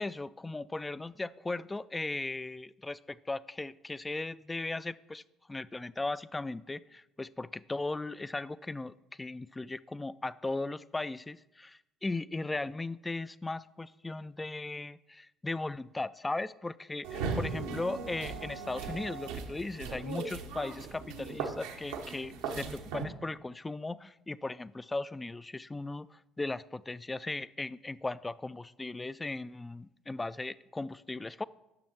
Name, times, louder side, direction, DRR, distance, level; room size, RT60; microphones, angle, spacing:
voice 1, 0.0-5.2 5.5-31.4, left 2 dB, 20° left, 18 dB, 0.3 m, -37 dB
sound 1, 17.0-23.1, right 5 dB, 80° right, 1.0 m, -38 dB
10.5 x 6.4 x 4.4 m, 0.92 s
hypercardioid pair, 60°, 0 cm